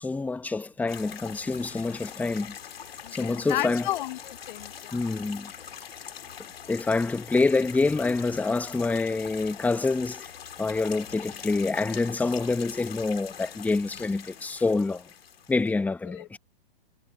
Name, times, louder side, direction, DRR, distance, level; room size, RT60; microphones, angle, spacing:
voice 1, 0.0-2.6 3.1-3.9 4.9-5.5 6.7-10.3 10.6-15.1 15.5-16.4, left 3 dB, 5° left, 1.1 m, -26 dB
sound 1, 0.9-15.7, left 8 dB, 80° left, 2.3 m, -43 dB
voice 2, 3.0-5.0 16.1-16.3, left 14 dB, 55° left, 0.9 m, -33 dB
hypercardioid pair, 130°, 30 cm